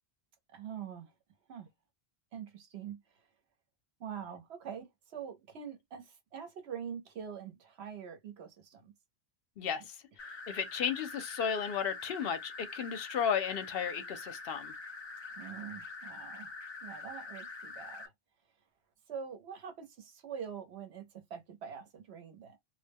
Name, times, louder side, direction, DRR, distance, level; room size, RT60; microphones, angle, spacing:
voice 1, 0.5-1.1 1.5-1.7 2.3-3.0 4.0-8.9 15.4-16.5 16.8-18.0 19.1-22.6, right 7 dB, 80° right, 1.1 m, -44 dB
sound 1, 10.2-18.1, left 3 dB, 40° left, 0.4 m, -45 dB
voice 2, 10.5-14.7, left 7 dB, 70° left, 0.8 m, -34 dB
2.3 x 2.1 x 3.4 m
omnidirectional pair, 1.1 m